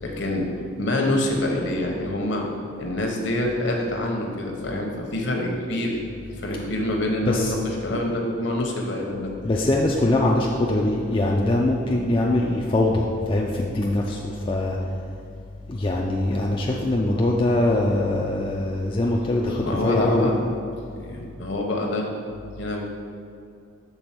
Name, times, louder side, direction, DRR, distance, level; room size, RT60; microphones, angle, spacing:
voice 1, 0.0-0.5 0.8-2.5 2.8-6.0 6.3-9.3 11.9-12.1 19.6-20.4 21.0-22.1 22.6-22.8, left 1 dB, 60° left, 1 dB, 1.0 m, -26 dB
voice 2, 9.4-14.8 15.7-20.3, left 1 dB, 25° left, -2 dB, 0.4 m, -22 dB
6.9 x 3.9 x 5.9 m, 2.4 s
head